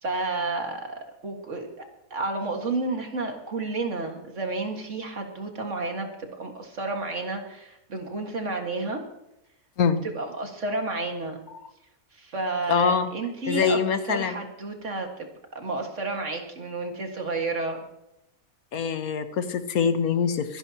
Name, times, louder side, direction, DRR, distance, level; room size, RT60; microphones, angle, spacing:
voice 1, 0.0-1.7 2.1-9.0 10.1-11.4 12.1-13.8 14.1-15.3 15.6-17.8, right 3 dB, 55° right, 3 dB, 2.1 m, -31 dB
voice 2, 12.7-13.1 13.5-14.4 18.7-20.6, left 6 dB, 80° left, 10 dB, 1.4 m, -24 dB
25.0 x 10.5 x 2.9 m, 0.87 s
omnidirectional pair, 1.5 m